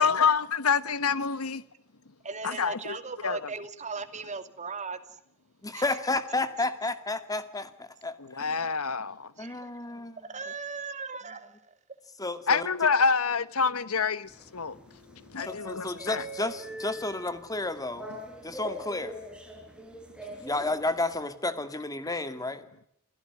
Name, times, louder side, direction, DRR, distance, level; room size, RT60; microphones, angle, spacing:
voice 1, 0.0-1.6 2.4-3.0 3.2-3.4 8.2-9.3 12.5-14.8 15.1-16.2, left 5 dB, 85° left, 1.3 m, -27 dB
voice 2, 2.3-5.0 5.7-6.0 9.4-9.7 10.2-11.7, right 4 dB, 35° right, 2.4 m, -38 dB
voice 3, 5.6-8.6 9.4-10.2 12.2-12.7 15.5-18.1 18.4-19.1 20.3-22.6, left 2 dB, 15° left, 2.1 m, -32 dB
sound 1, 14.3-21.3, equal, 5° right, 4.8 m, -43 dB
28.5 x 17.0 x 9.6 m
head